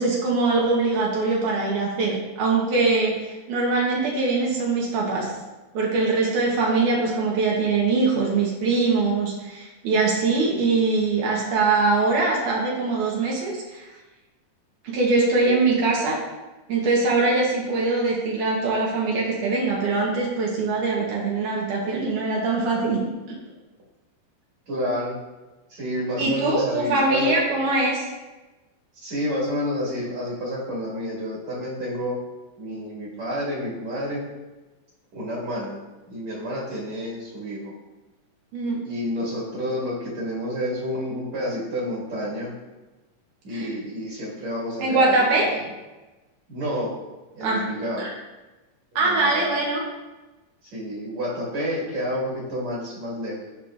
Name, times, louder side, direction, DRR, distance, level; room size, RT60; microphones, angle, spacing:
voice 1, 0.0-5.3 5.7-13.8 14.8-16.2 16.7-23.0 26.2-28.1 38.5-38.8 43.5-43.7 44.8-45.5 47.4-47.6 48.0-48.1 49.0-49.8, right 3 dB, 75° right, -3 dB, 2.5 m, -22 dB
voice 2, 24.7-25.2 25.7-27.4 29.0-32.2 32.6-34.2 35.1-35.7 36.1-37.7 38.8-42.5 43.4-45.5 46.5-46.9 47.3-48.1 48.9-49.5 50.7-53.5, equal, 55° right, -7 dB, 2.8 m, -29 dB
9.0 x 5.7 x 2.5 m, 1.1 s
omnidirectional pair, 3.8 m